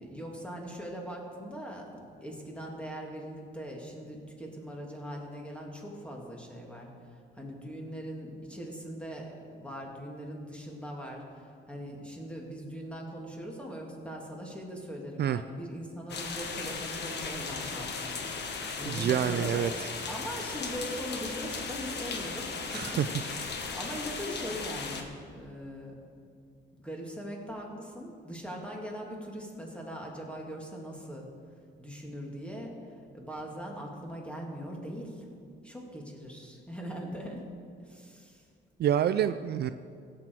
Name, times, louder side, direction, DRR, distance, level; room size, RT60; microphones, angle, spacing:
voice 1, 0.0-6.9 7.3-11.2 11.7-19.7 20.1-22.8 23.2-25.9 26.8-31.3 31.8-35.3 35.6-37.4 37.8-38.4, equal, 5° left, -1 dB, 2.4 m, -41 dB
sound 1, 16.1-25.0, left 4 dB, 60° left, 1.3 m, -37 dB
voice 2, 18.9-19.9 22.7-23.1 38.8-39.7, right 10 dB, 55° right, 12 dB, 0.4 m, -27 dB
16.5 x 7.6 x 4.6 m, 2.3 s
cardioid pair, 90°, 20 cm